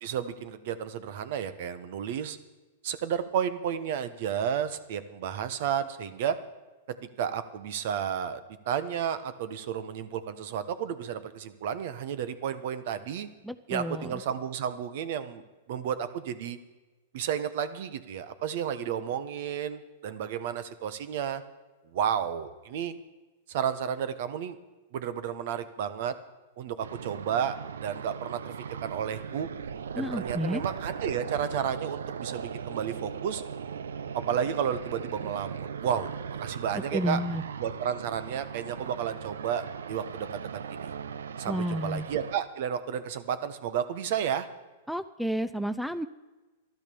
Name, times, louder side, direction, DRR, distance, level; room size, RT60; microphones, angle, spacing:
voice 1, 0.0-2.4 2.8-6.4 7.2-8.4 8.7-13.3 13.7-15.4 15.7-16.6 17.1-21.4 21.9-22.9 23.5-24.6 24.9-26.1 26.6-27.5 27.8-28.5 28.8-29.5 30.0-33.4 34.1-37.2 37.6-40.4 40.7-40.9 41.4-44.5, right 8 dB, 60° right, 13 dB, 1.2 m, -32 dB
voice 2, 13.4-14.2 30.0-30.6 36.7-37.4 41.4-42.0 44.9-46.1, equal, ahead, 10 dB, 0.5 m, -31 dB
sound 1, 26.8-42.4, right 7 dB, 85° right, 0.6 m, -38 dB
12.5 x 12.0 x 7.0 m, 1.2 s
hypercardioid pair, 120°, 0 cm